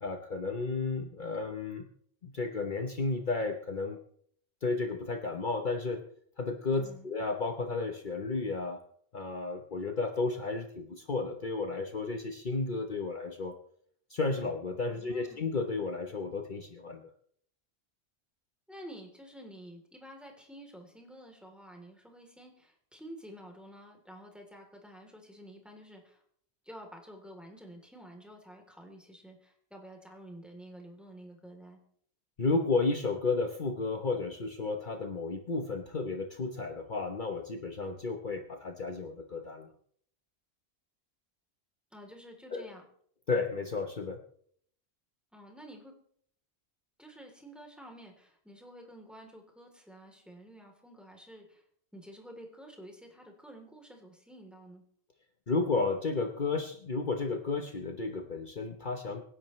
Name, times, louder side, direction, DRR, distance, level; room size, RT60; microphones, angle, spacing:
voice 1, 0.0-1.9 2.2-4.0 4.6-6.0 6.4-8.8 9.1-13.5 14.1-17.1 32.4-39.7 42.5-42.7 43.3-44.2 55.5-59.2, left 3 dB, 50° left, 4 dB, 1.2 m, -32 dB
voice 2, 6.8-7.1 14.9-15.4 18.7-26.2 26.6-31.8 41.9-42.8 45.3-45.9 47.0-51.6 51.9-54.8, equal, ahead, 1 dB, 3.3 m, -50 dB
26.0 x 10.5 x 3.2 m, 0.62 s
omnidirectional pair, 1.1 m